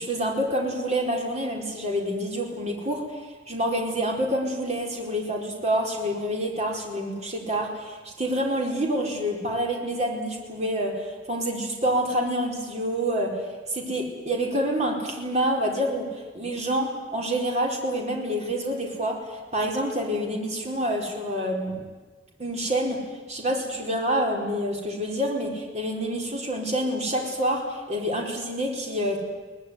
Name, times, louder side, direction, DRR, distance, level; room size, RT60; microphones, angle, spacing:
voice 1, 0.0-3.0 3.5-13.3 13.7-16.1 16.3-19.2 19.5-21.8 22.4-23.0 23.3-29.2, equal, 40° right, 1 dB, 4.6 m, -27 dB
22.5 x 18.5 x 9.7 m, 1.3 s
head